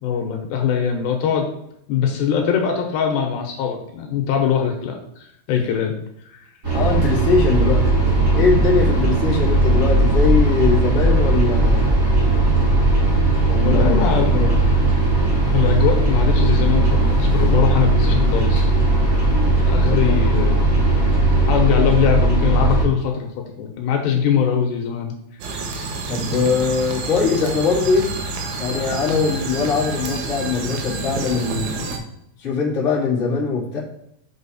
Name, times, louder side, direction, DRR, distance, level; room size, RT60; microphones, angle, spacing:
voice 1, 0.0-1.5 1.9-5.9 6.3-6.4 13.6-14.3 14.6-14.8 15.5-18.7 19.6-20.6 21.3-23.3 23.6-25.1, left 7 dB, 75° left, 2 dB, 2.9 m, -22 dB
sound 1, 6.6-22.8, right 2 dB, 30° right, 2.1 m, -17 dB
voice 2, 6.7-7.9 8.3-11.9 13.5-14.5 19.8-20.2 26.1-28.1 28.6-32.0 32.4-33.8, left 5 dB, 35° left, -6 dB, 1.1 m, -21 dB
sound 2, 25.4-32.0, right 3 dB, 75° right, 3.3 m, -28 dB
6.2 x 6.1 x 4.2 m, 0.77 s
omnidirectional pair, 5.4 m